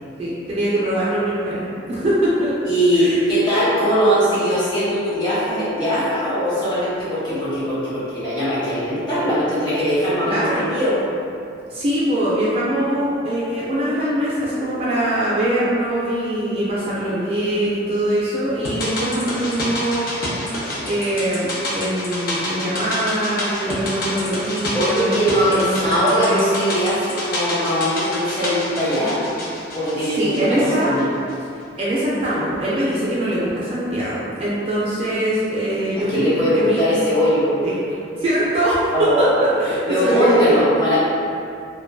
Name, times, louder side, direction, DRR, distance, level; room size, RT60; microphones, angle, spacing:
voice 1, 0.2-1.6 1.9-2.5 2.9-3.2 10.3-10.6 11.7-20.1 20.8-25.1 25.4-26.5 30.0-30.9 31.8-36.8 37.6-37.7 38.2-40.6, right 1 dB, 30° right, -9 dB, 0.3 m, -22 dB
voice 2, 2.6-11.0 24.7-29.2 29.7-31.1 36.0-37.5 38.9-41.0, equal, 25° left, -11 dB, 0.7 m, -20 dB
sound 1, 18.6-31.0 31.3-31.4, left 1 dB, 50° left, 0.4 m, -28 dB
2.5 x 2.2 x 2.2 m, 2.6 s
head